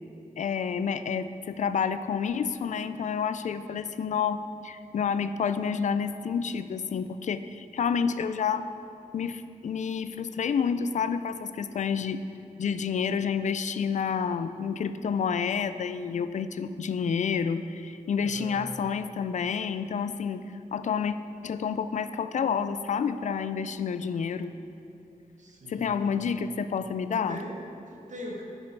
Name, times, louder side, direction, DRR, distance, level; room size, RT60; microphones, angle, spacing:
voice 1, 0.4-8.7 9.1-12.2 12.6-20.4 20.7-21.2 21.4-24.5 25.7-27.4, left 6 dB, 60° left, 12 dB, 0.4 m, -29 dB
voice 2, 18.2-18.6 25.4-26.0 27.3-28.4, equal, 60° right, 0 dB, 1.2 m, -41 dB
10.5 x 5.4 x 4.5 m, 2.8 s
wide cardioid pair, 110°, 14 cm